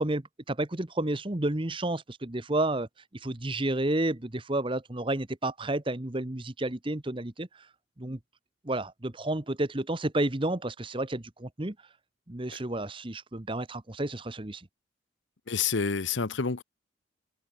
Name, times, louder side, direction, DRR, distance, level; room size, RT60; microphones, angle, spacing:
voice 1, 0.0-2.9 3.2-7.5 8.0-8.2 8.6-11.7 12.3-14.7, right 1 dB, 25° right, 1.1 m, -31 dB
voice 2, 15.5-16.6, left 5 dB, 75° left, 1.0 m, -28 dB
open air
head